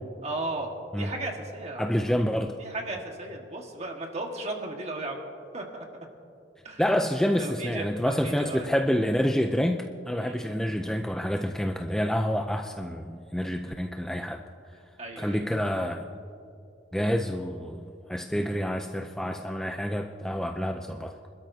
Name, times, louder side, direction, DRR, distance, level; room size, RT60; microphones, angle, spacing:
voice 1, 0.2-0.7 1.0-2.1 2.6-5.2 5.5-5.8 6.6-6.8 7.3-8.7 10.2-10.6 15.0-15.5, right 2 dB, 35° right, 2 dB, 1.5 m, -35 dB
voice 2, 1.8-2.6 6.8-14.4 15.2-16.1 16.9-21.1, equal, 5° left, 4 dB, 0.4 m, -28 dB
26.0 x 12.5 x 2.7 m, 2.5 s
head